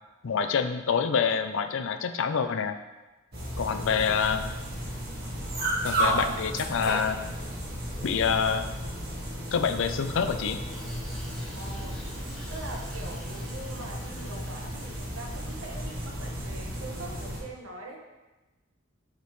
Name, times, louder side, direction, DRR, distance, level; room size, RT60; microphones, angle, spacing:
voice 1, 0.2-2.8 3.6-4.5 5.8-7.2 8.0-8.6 9.5-10.6, left 6 dB, 65° left, 8 dB, 0.5 m, -26 dB
sound 1, 3.3-17.4, right 1 dB, 50° right, 1.7 m, -33 dB
Bicycle, 10.7-16.2, equal, 5° left, 1.4 m, -50 dB
voice 2, 11.5-12.2 12.5-18.0, right 2 dB, 80° right, 1 dB, 1.1 m, -43 dB
6.7 x 5.2 x 3.1 m, 1.1 s
head